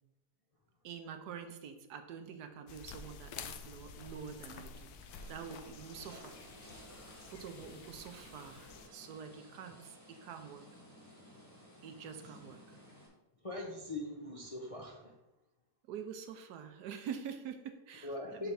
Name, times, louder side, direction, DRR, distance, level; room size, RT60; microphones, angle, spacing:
voice 1, 0.8-5.0 5.2-6.4 7.3-10.6 11.8-12.6 15.9-18.5, right 7 dB, 85° right, 7 dB, 1.3 m, -46 dB
sound 1, 2.7-8.9, left 5 dB, 75° left, 1.1 m, -50 dB
sound 2, 5.1-13.1, equal, 10° left, 1.8 m, -56 dB
voice 2, 13.4-15.1 18.0-18.5, left 2 dB, 45° left, -1 dB, 0.4 m, -41 dB
6.0 x 3.3 x 5.8 m, 0.94 s
omnidirectional pair, 1.7 m